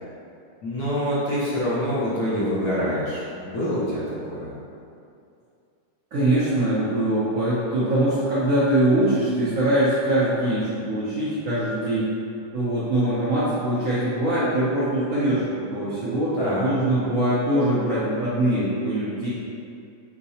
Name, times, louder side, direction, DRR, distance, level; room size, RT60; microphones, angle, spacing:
voice 1, 0.6-4.5 16.4-16.7, equal, 65° left, -8 dB, 1.2 m, -26 dB
voice 2, 6.1-12.1 12.5-15.4 15.7-19.3, right 1 dB, 70° right, -10 dB, 0.8 m, -22 dB
4.6 x 2.0 x 2.7 m, 2.5 s
omnidirectional pair, 1.9 m